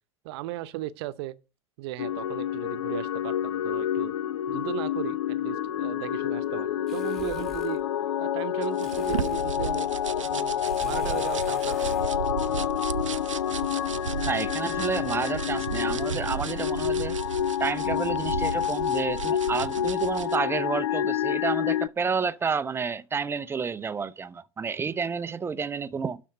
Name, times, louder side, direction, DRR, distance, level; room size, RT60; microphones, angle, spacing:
voice 1, 0.2-1.4 1.8-4.1 4.5-7.8 8.2-12.1, right 15 dB, 55° right, 0.8 m, -37 dB
sound 1, 2.0-21.9, left 10 dB, 70° left, 0.4 m, -28 dB
sound 2, 6.9-7.8 8.8-9.5 10.6-12.1, equal, ahead, 2.2 m, -45 dB
sound 3, 8.6-20.4, right 8 dB, 80° right, 0.5 m, -35 dB
voice 2, 14.2-17.2 17.6-26.2, right 5 dB, 15° right, 0.5 m, -30 dB
12.0 x 4.2 x 6.3 m
figure-of-eight pair, 90°, 16 cm